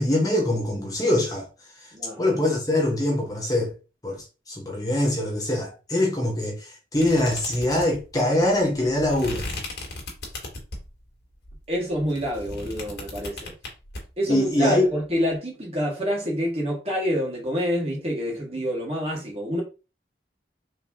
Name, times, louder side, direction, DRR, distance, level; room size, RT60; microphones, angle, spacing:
voice 1, 0.0-1.5 2.2-3.7 4.0-9.4 14.3-14.9, left 1 dB, 20° left, 1.0 m, -23 dB
voice 2, 1.9-2.4 11.7-13.5 14.2-19.6, equal, 35° right, 1.7 m, -27 dB
sound 1, 7.0-11.0 11.4-14.0, left 2 dB, 75° left, 1.9 m, -36 dB
4.8 x 3.4 x 2.8 m
head